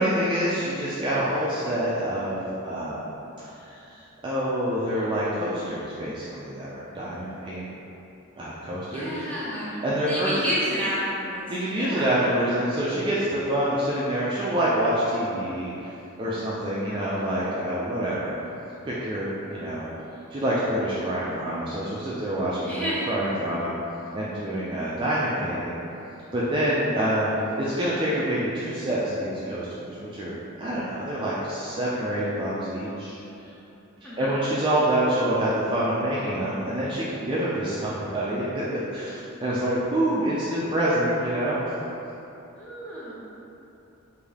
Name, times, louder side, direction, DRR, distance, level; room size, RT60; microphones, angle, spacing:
voice 1, 0.0-3.1 3.6-7.7 8.4-9.2 9.8-10.3 11.5-15.9 16.2-18.3 18.8-19.9 20.3-23.7 24.1-25.8 26.3-27.3 27.6-30.3 30.6-33.5 34.0-41.6, right 1 dB, 25° right, -8 dB, 0.3 m, -27 dB
voice 2, 8.9-9.8 10.1-11.4 11.7-12.1 22.6-23.1 34.0-34.4 42.6-43.1, equal, 5° left, -9 dB, 0.7 m, -30 dB
3.5 x 2.6 x 3.3 m, 2.9 s
head